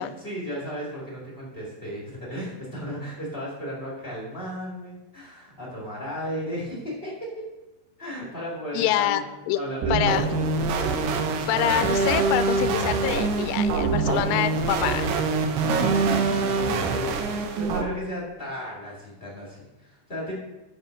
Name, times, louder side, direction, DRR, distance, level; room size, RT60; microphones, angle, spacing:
voice 1, 0.0-7.4 8.0-9.2 9.5-10.5 11.3-12.0 13.5-14.6 15.4-20.3, equal, 40° left, -5 dB, 0.7 m, -35 dB
voice 2, 8.7-9.2 9.5-9.6 9.9-10.3 11.5-15.1, left 13 dB, 90° left, 11 dB, 3.1 m, -25 dB
sound 1, 9.8-17.8, right 4 dB, 75° right, 2.6 m, -24 dB
12.0 x 5.5 x 6.4 m, 1.1 s
omnidirectional pair, 5.5 m